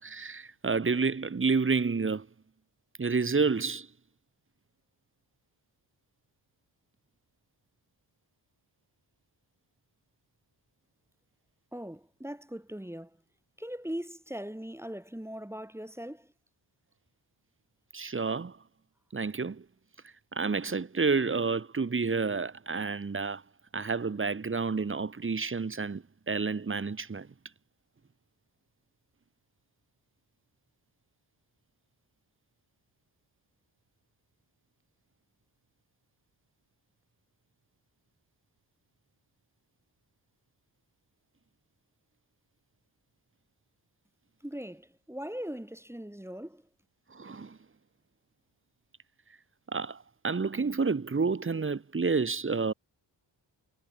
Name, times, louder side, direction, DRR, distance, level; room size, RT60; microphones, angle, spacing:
voice 1, 0.0-2.3 3.0-3.9 17.9-18.6 19.1-19.6 20.3-23.4 23.7-27.3 47.1-47.6 49.7-52.7, right 4 dB, 30° right, 1.4 m, -29 dB
voice 2, 11.7-13.1 13.6-16.3 44.4-46.6, equal, 5° right, 1.4 m, -40 dB
wide cardioid pair, 100°, 44 cm